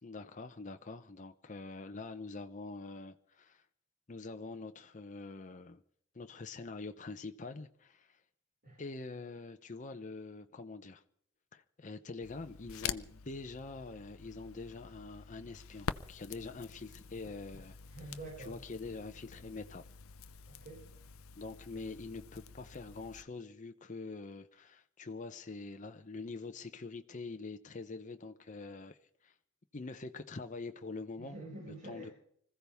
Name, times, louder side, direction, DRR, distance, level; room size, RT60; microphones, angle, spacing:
voice 1, 0.0-3.6 4.1-5.8 6.1-8.2 8.8-11.0 11.5-17.8 18.5-19.8 21.4-29.0 29.2-29.3 29.7-31.4 31.9-32.1, left 3 dB, 35° left, 0.7 m, -45 dB
Crackle, 12.2-23.2, left 7 dB, 75° left, 0.6 m, -46 dB
voice 2, 17.9-18.6 20.5-20.8 31.2-32.1, right 1 dB, 45° right, 5.3 m, -47 dB
25.0 x 15.0 x 3.5 m
head